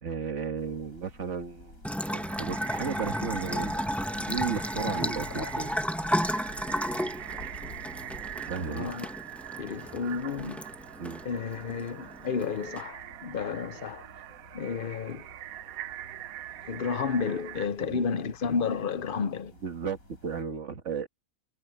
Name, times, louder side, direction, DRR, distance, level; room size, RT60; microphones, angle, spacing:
voice 1, 0.0-1.8 2.1-3.9 4.3-5.7 8.4-8.9 11.0-11.2 17.8-18.0 19.6-21.1, right 6 dB, 60° right, 1.8 m, -34 dB
sound 1, 0.6-20.4, left 2 dB, 75° left, 6.9 m, -50 dB
Bathtub (filling or washing) / Trickle dribble, 1.8-12.8, equal, ahead, 0.8 m, -33 dB
sound 2, 2.0-17.7, right 13 dB, 85° right, 1.1 m, -43 dB
voice 2, 8.6-9.1 9.6-10.6 11.2-14.1 14.5-15.3 16.7-19.5, left 5 dB, 50° left, 0.7 m, -31 dB
omnidirectional pair, 1.5 m